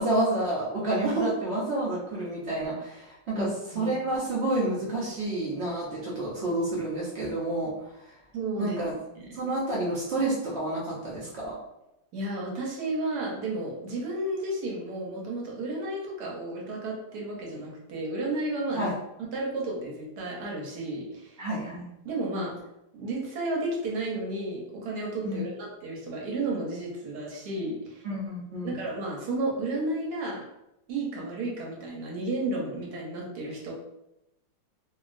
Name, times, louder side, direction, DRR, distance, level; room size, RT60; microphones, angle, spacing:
voice 1, 0.0-3.5 3.7-8.2 8.6-8.9 9.3-11.5 18.7-18.9 21.4-21.9 25.2-25.4 28.0-28.8, right 2 dB, 85° right, -7 dB, 0.5 m, -29 dB
voice 2, 8.3-8.8 9.2-9.3 12.1-18.9 19.3-21.5 22.0-22.5 22.9-28.1 28.6-30.4 30.9-33.7, right 2 dB, 65° right, -2 dB, 1.1 m, -32 dB
2.9 x 2.4 x 2.4 m, 0.89 s
omnidirectional pair, 2.0 m